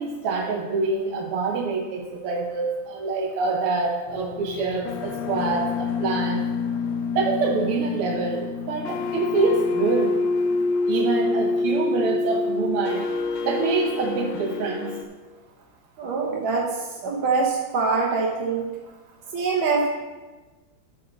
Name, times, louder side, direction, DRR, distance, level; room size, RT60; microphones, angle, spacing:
voice 1, 0.0-6.4 7.2-10.2 10.9-13.1 13.4-15.0, right 4 dB, 85° right, 0 dB, 1.8 m, -26 dB
sound 1, 4.1-15.0, left 4 dB, 75° left, 1.5 m, -27 dB
voice 2, 16.0-16.7 17.0-18.7 19.3-19.9, right 4 dB, 70° right, -3 dB, 1.7 m, -24 dB
10.0 x 7.8 x 3.9 m, 1.2 s
omnidirectional pair, 2.4 m